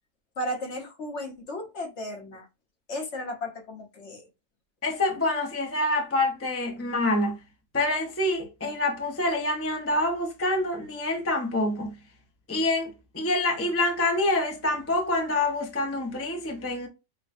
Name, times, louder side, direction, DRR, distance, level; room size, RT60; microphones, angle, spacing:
voice 1, 0.4-2.5 2.9-4.2, left 1 dB, 55° left, 1.1 m, -34 dB
voice 2, 4.8-7.4 7.7-12.0 12.5-16.9, left 2 dB, 15° left, 0.5 m, -26 dB
5.5 x 2.2 x 2.5 m
omnidirectional pair, 1.6 m